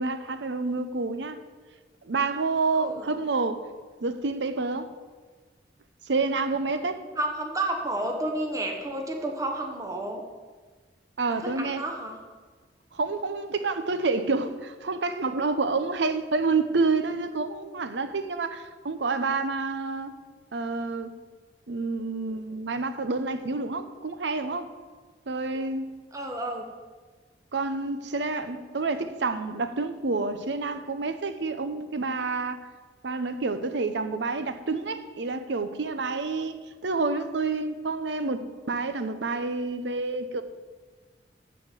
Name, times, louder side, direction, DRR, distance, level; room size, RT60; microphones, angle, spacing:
voice 1, 0.0-1.4 2.0-3.6 4.0-4.9 6.1-7.0 11.2-11.8 12.9-20.1 20.5-21.1 21.7-24.7 25.3-25.9 27.5-32.6 33.0-40.4, right 3 dB, 85° right, 0.7 m, -28 dB
voice 2, 2.7-3.2 6.7-6.9 7.2-10.2 11.3-12.2 26.1-26.6, right 1 dB, 20° right, 1.1 m, -31 dB
13.0 x 4.4 x 7.3 m
head